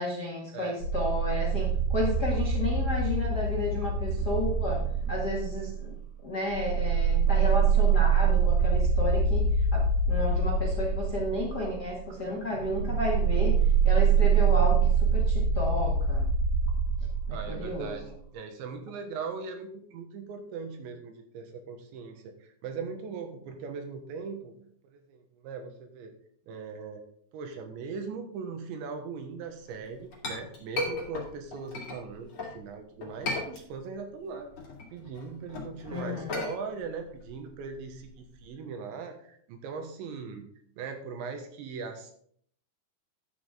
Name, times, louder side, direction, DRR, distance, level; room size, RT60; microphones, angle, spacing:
voice 1, 0.0-4.8 5.1-5.9 6.2-13.6 13.8-16.3 17.3-18.1 35.9-36.4, left 1 dB, 75° left, -3 dB, 0.9 m, -32 dB
sound 1, 0.8-6.0 6.5-18.0, right 5 dB, 45° right, 2.7 m, -25 dB
voice 2, 17.3-24.6 24.8-26.1 26.5-27.0 27.3-34.5 34.9-40.5 40.8-42.1, right 5 dB, 75° right, 5 dB, 3.4 m, -40 dB
Chink clink, 29.7-32.6 33.0-34.1 34.4-38.5, left 2 dB, 35° left, 2.4 m, -37 dB
11.5 x 8.0 x 3.7 m, 0.62 s
omnidirectional pair, 5.5 m